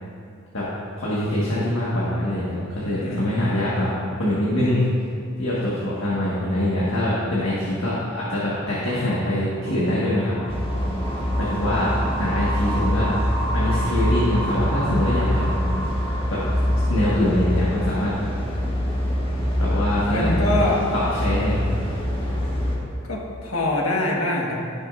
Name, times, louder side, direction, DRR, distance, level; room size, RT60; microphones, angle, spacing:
voice 1, 1.0-4.8 5.4-10.3 11.4-13.1 13.5-15.6 16.3-16.4 16.9-18.1 19.6-20.7 20.9-22.0, left 1 dB, 60° left, -8 dB, 1.5 m, -24 dB
voice 2, 3.0-3.6 20.1-20.9 23.1-24.6, left 1 dB, 80° left, -2 dB, 1.4 m, -24 dB
sound 1, 8.7-18.1, right 2 dB, 5° left, 1.5 m, -34 dB
sound 2, 10.5-22.8, equal, 25° left, 1.5 m, -24 dB
16.0 x 6.5 x 2.5 m, 2.4 s
head